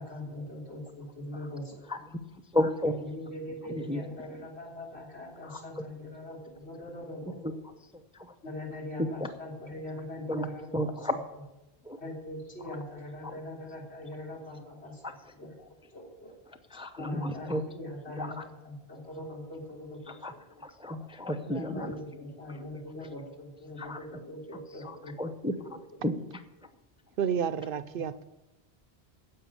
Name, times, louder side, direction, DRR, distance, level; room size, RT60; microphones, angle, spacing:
voice 1, 0.0-1.8 2.8-7.4 8.4-11.1 12.0-15.6 15.9-16.3 17.0-20.1 21.4-25.3 25.6-25.7 27.9-28.1, left 1 dB, 85° left, -3 dB, 3.8 m, -41 dB
voice 2, 1.9-2.2 2.5-2.9 3.7-4.0 5.5-5.8 7.4-7.5 9.2-9.3 10.3-10.5 10.7-11.2 11.8-12.0 13.2-13.3 16.7-17.6 18.2-18.3 20.2-20.3 20.6-21.9 23.8-24.0 24.8-25.7 26.0-26.1, left 1 dB, 5° right, 8 dB, 0.6 m, -32 dB
voice 3, 27.2-28.2, right 8 dB, 65° right, 14 dB, 0.7 m, -30 dB
10.0 x 7.8 x 8.6 m, 0.99 s
omnidirectional pair, 1.1 m